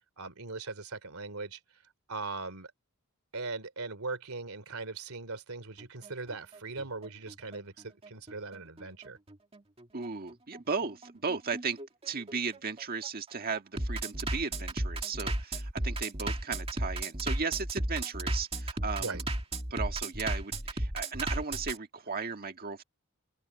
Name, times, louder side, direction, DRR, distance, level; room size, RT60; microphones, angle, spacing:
voice 1, 0.2-1.6 2.1-2.7 3.3-9.2 19.0-19.2, right 3 dB, 80° right, 3.0 m, -39 dB
Bass drum, 5.8-21.8, right 1 dB, 30° right, 2.3 m, -34 dB
voice 2, 9.9-11.8 12.1-19.2 19.7-22.8, right 5 dB, 45° right, 1.8 m, -36 dB
open air
head